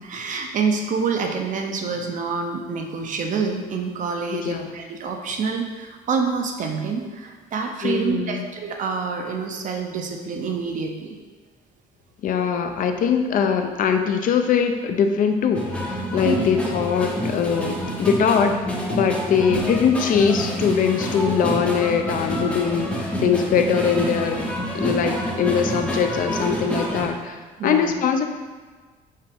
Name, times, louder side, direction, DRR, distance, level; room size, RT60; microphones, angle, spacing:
voice 1, 0.0-11.2 16.2-16.4 19.5-19.6 27.6-27.9, right 5 dB, 50° right, 3 dB, 0.5 m, -27 dB
voice 2, 4.3-4.7 7.8-8.4 12.2-18.6 18.9-24.5 24.7-28.3, left 7 dB, 55° left, 6 dB, 0.4 m, -22 dB
sound 1, 15.5-27.1, equal, 5° left, 0.6 m, -28 dB
5.5 x 2.5 x 3.4 m, 1.4 s
cardioid pair, 110°, 17 cm